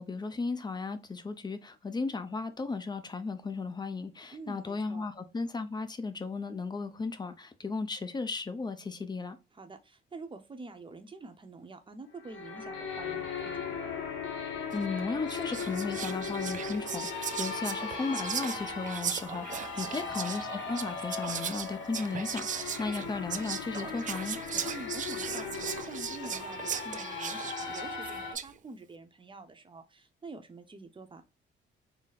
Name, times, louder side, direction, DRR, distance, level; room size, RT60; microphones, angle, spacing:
voice 1, 0.0-9.4 14.7-24.4, left 4 dB, 20° left, 0.6 m, -35 dB
voice 2, 4.3-5.1 9.5-13.8 19.7-20.2 24.7-31.2, right 3 dB, 25° right, 0.8 m, -47 dB
sound 1, 12.2-28.3, left 5 dB, 75° left, 0.9 m, -38 dB
Whispering, 14.7-14.9 15.3-28.6, right 8 dB, 40° right, 0.4 m, -38 dB
4.0 x 2.1 x 4.0 m
cardioid pair, 90°, 20 cm